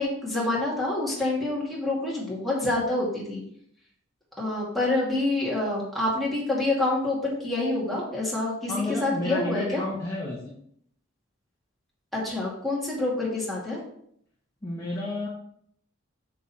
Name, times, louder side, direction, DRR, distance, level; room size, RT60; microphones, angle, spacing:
voice 1, 0.0-3.4 4.4-9.8 12.1-13.8, left 2 dB, ahead, -6 dB, 2.3 m, -27 dB
voice 2, 8.7-10.5 14.6-15.3, left 2 dB, 15° left, -7 dB, 1.4 m, -31 dB
6.6 x 6.4 x 4.3 m, 0.69 s
head